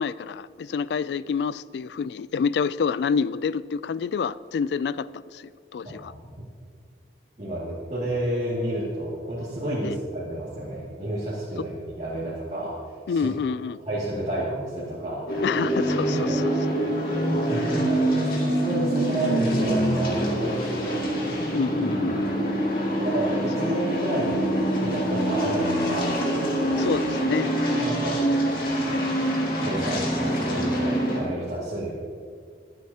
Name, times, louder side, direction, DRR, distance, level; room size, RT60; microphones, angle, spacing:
voice 1, 0.0-5.1 5.3-5.4 5.7-6.1 9.8-10.0 13.1-13.8 15.4-16.4 21.5-22.5 26.8-27.5, left 6 dB, 75° left, 18 dB, 0.3 m, -27 dB
voice 2, 5.8-6.4 7.4-12.8 13.1-13.3 13.9-15.2 16.1-16.4 17.5-21.0 22.0-22.1 23.0-24.5 24.8-26.3 26.7-27.0 27.8-28.3 28.6-29.3 29.6-31.9, right 1 dB, 35° right, -10 dB, 2.2 m, -30 dB
sound 1, 15.3-31.2, right 1 dB, 55° left, 2.2 m, -25 dB
23.0 x 8.1 x 2.8 m, 2.1 s
head